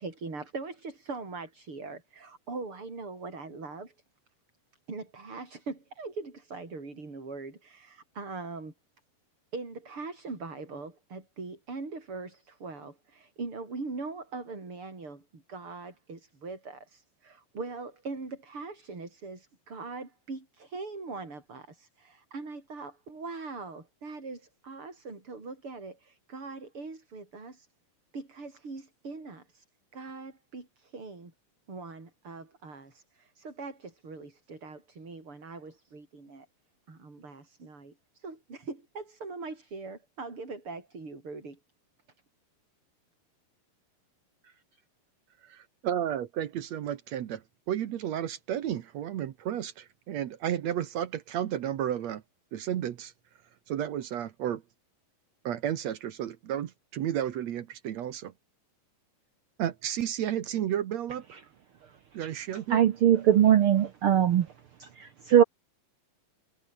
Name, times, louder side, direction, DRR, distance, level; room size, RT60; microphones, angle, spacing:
voice 1, 0.0-3.9 4.9-8.7 9.5-27.7 28.1-29.6 29.9-31.3 31.7-36.5 36.9-41.6 44.4-44.8, right 3 dB, 35° right, 6.5 m, -41 dB
voice 2, 45.4-47.4 47.7-52.2 52.5-53.1 53.7-54.6 55.4-58.3 59.6-61.3 62.1-62.8, right 10 dB, 60° right, 2.1 m, -32 dB
voice 3, 62.7-64.5 65.0-65.4, right 10 dB, 85° right, 1.2 m, -21 dB
omnidirectional pair, 4.0 m